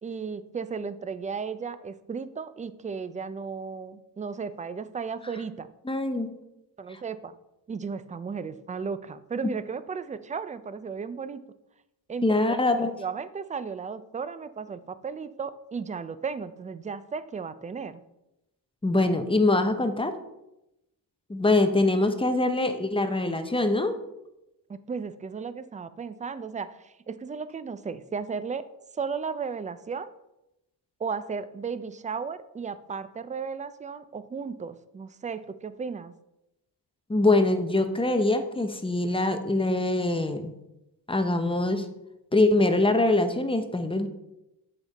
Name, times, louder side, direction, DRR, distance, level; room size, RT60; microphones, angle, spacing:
voice 1, 0.0-5.7 6.8-7.3 7.7-11.4 12.1-12.6 13.0-18.0 24.7-28.6 29.0-30.1 31.0-36.1, right 5 dB, 20° right, 14 dB, 0.3 m, -35 dB
voice 2, 5.9-6.3 6.9-7.0 12.2-12.9 18.8-20.2 21.3-24.0 37.1-40.5 41.1-41.9 42.3-44.1, left 2 dB, 15° left, 7 dB, 0.7 m, -23 dB
7.2 x 5.3 x 4.0 m, 0.90 s
cardioid pair, 100°, 43 cm